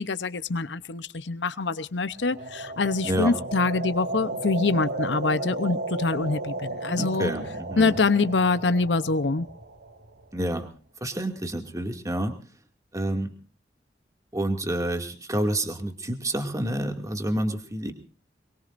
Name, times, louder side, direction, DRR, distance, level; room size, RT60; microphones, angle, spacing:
voice 1, 0.0-7.3 7.8-9.5, left 3 dB, 90° left, 12 dB, 0.8 m, -25 dB
sound 1, 2.2-10.2, right 2 dB, 65° right, 2.0 m, -34 dB
voice 2, 3.0-3.3 6.9-8.0 10.3-10.7 11.0-12.3 12.9-13.3 14.3-17.9, right 1 dB, 20° right, 5 dB, 2.3 m, -28 dB
24.0 x 23.0 x 2.6 m, 0.40 s
head